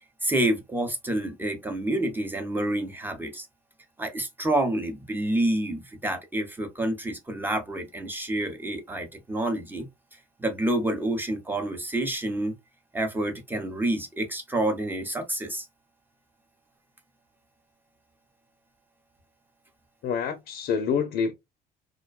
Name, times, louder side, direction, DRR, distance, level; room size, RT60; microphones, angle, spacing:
voice 1, 0.2-3.5 4.0-9.9 10.4-12.5 12.9-15.7, right 1 dB, 10° right, 0.7 m, -28 dB
voice 2, 20.0-21.3, left 6 dB, 70° left, 0.6 m, -27 dB
2.4 x 2.1 x 2.4 m
cardioid pair, 110°, 17 cm